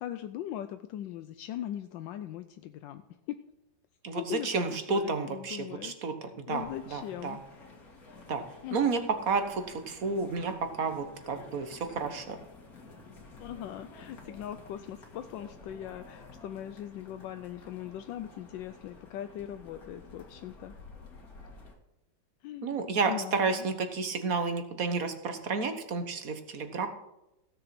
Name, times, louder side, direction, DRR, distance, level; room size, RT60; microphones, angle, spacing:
voice 1, 0.0-3.0 3.3-3.4 4.1-5.9 6.5-7.4 8.6-8.8 13.4-20.7 22.4-22.8 23.0-23.7, left 11 dB, 80° left, 9 dB, 1.3 m, -40 dB
voice 2, 4.0-6.6 6.9-7.4 8.3-8.4 8.7-12.4 22.6-26.9, right 4 dB, 50° right, 7 dB, 1.6 m, -31 dB
sound 1, 6.5-21.7, left 3 dB, 50° left, 2.3 m, -51 dB
15.5 x 7.0 x 6.0 m, 0.89 s
omnidirectional pair, 2.0 m